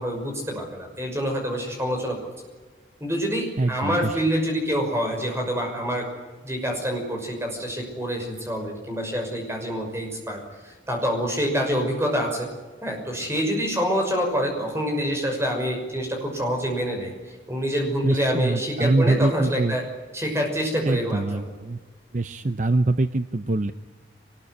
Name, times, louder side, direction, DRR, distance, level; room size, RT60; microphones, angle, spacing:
voice 1, 0.0-2.2 3.0-6.1 6.4-10.4 10.6-12.5 12.8-17.1 17.5-19.8 20.1-21.5, equal, 15° right, 2 dB, 6.0 m, -26 dB
voice 2, 3.6-4.2 18.0-19.8 20.8-21.8 22.1-23.7, right 2 dB, 40° right, 11 dB, 0.7 m, -24 dB
23.5 x 20.5 x 9.9 m, 1.3 s
head